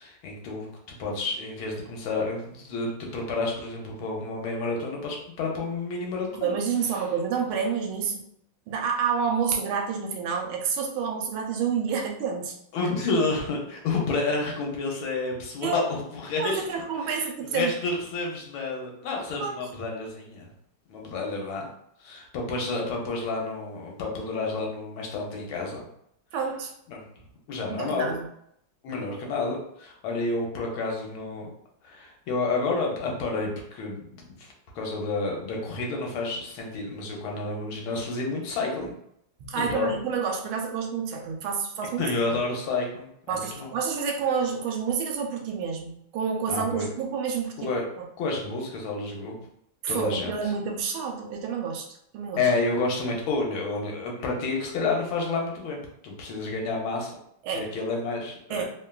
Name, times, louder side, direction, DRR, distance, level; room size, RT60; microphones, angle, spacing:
voice 1, 0.0-6.5 12.7-16.6 17.1-17.2 17.5-20.5 20.9-21.7 22.0-25.9 26.9-27.0 27.5-28.1 28.8-31.5 31.8-34.5 34.7-38.9 39.5-39.9 42.0-43.7 46.5-46.9 47.6-47.8 48.2-49.4 49.9-50.5 52.4-55.8 56.0-57.1 57.5-58.7, left 3 dB, 80° left, 0 dB, 1.5 m, -30 dB
voice 2, 6.3-8.2 8.7-12.6 15.6-15.9 16.4-17.7 19.3-19.6 26.3-26.7 27.7-28.3 39.4-42.4 43.3-47.7 48.0-48.1 49.8-51.9 52.1-52.5 57.4-57.7 58.5-58.7, right 6 dB, 80° right, 2 dB, 1.3 m, -29 dB
3.4 x 2.2 x 2.3 m, 0.72 s
omnidirectional pair, 2.3 m